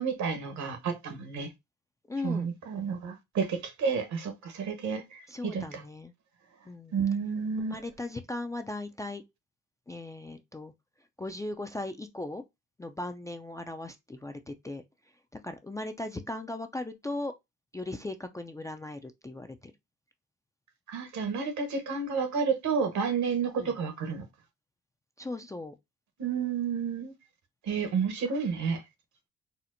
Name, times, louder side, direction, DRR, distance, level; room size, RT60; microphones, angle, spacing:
voice 1, 0.0-1.5 2.2-5.8 6.9-7.8 20.9-24.2 26.2-27.1 27.7-28.8, right 5 dB, 70° right, 1.1 m, -30 dB
voice 2, 2.1-2.5 5.3-6.1 6.7-7.0 7.6-9.2 9.9-10.7 11.2-12.4 12.8-14.8 15.3-17.3 17.7-19.7 23.6-23.8 25.2-25.7, left 2 dB, 10° left, 0.3 m, -38 dB
4.2 x 2.1 x 2.5 m
cardioid pair, 90°, 30 cm